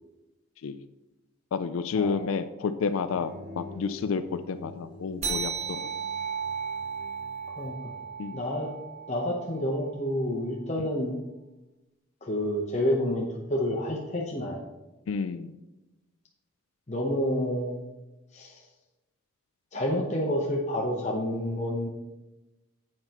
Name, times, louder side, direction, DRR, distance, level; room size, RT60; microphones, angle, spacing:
voice 1, 1.5-5.9 8.2-8.4 15.1-15.5, left 5 dB, 75° left, 11 dB, 0.4 m, -30 dB
sound 1, 3.0-8.1, left 1 dB, 65° right, 3.3 m, -47 dB
sound 2, 5.2-10.1, right 6 dB, 30° right, 1.5 m, -35 dB
voice 2, 7.6-7.9 8.3-8.7 9.1-11.1 12.2-14.6 16.9-17.8 18.3-18.6 19.7-21.9, left 1 dB, 30° left, -2 dB, 0.8 m, -29 dB
9.7 x 7.8 x 3.0 m, 1.0 s
head